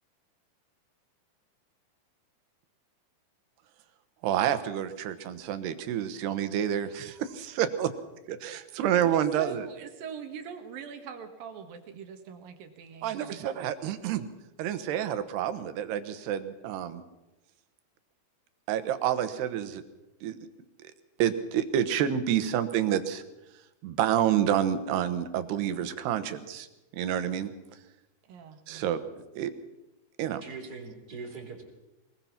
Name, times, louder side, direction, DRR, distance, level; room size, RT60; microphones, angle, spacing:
voice 1, 4.2-7.9 8.3-9.7 13.0-14.3 14.6-17.0 18.7-19.8 20.2-20.4 20.8-20.9 21.2-23.2 23.8-26.7 26.9-27.5 28.7-29.0 29.4-29.5 30.2-30.4, right 10 dB, 85° right, 11 dB, 3.3 m, -28 dB
voice 2, 9.0-13.4 28.2-28.6, right 7 dB, 65° right, 7 dB, 3.1 m, -42 dB
voice 3, 30.4-31.6, right 4 dB, 25° right, 2 dB, 3.6 m, -41 dB
23.0 x 20.5 x 5.9 m, 1.0 s
omnidirectional pair, 4.6 m